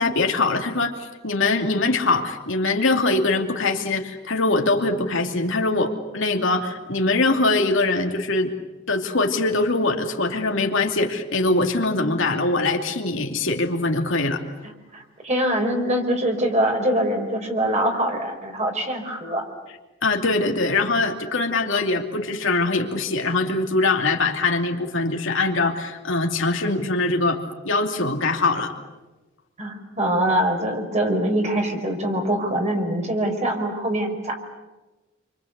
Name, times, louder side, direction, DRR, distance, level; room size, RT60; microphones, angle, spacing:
voice 1, 0.0-8.5 8.9-14.4 20.0-27.4 27.6-28.7, left 3 dB, 65° left, 3 dB, 2.8 m, -22 dB
voice 2, 14.9-19.4 29.6-34.4, right 1 dB, 35° right, 3 dB, 5.1 m, -23 dB
28.5 x 25.0 x 8.2 m, 1.1 s
head